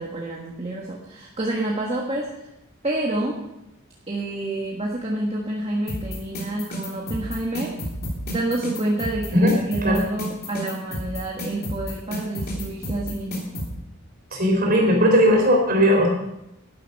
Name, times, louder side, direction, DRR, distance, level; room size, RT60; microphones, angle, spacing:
voice 1, 0.0-2.3 2.8-3.4 4.1-7.7 8.3-13.5, right 1 dB, 25° right, -3 dB, 1.6 m, -28 dB
sound 1, 5.9-13.7, left 1 dB, 45° left, 3.2 m, -31 dB
voice 2, 14.3-16.1, equal, 45° right, 0 dB, 3.9 m, -18 dB
12.0 x 10.5 x 5.4 m, 0.87 s
head